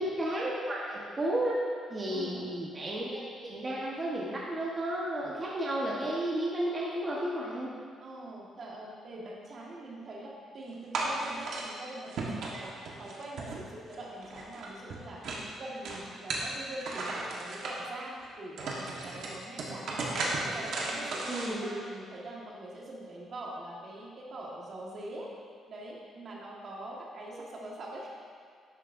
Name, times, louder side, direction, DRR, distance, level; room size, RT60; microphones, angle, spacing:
voice 1, 0.0-1.6 1.9-3.2 3.5-7.7 21.3-21.7 27.3-27.5, right 1 dB, 30° right, -5 dB, 1.2 m, -32 dB
voice 2, 2.1-2.5 8.0-15.2 15.6-20.2 20.5-25.3 25.7-28.1, right 1 dB, 50° right, -3 dB, 1.6 m, -43 dB
sound 1, 10.9-11.7 12.1-14.0 14.2-15.5 15.8-17.7 18.2-18.3 18.6-21.5, right 2 dB, 70° right, 1.3 m, -35 dB
11.5 x 6.5 x 2.6 m, 2.2 s
cardioid pair, 90°, 0 cm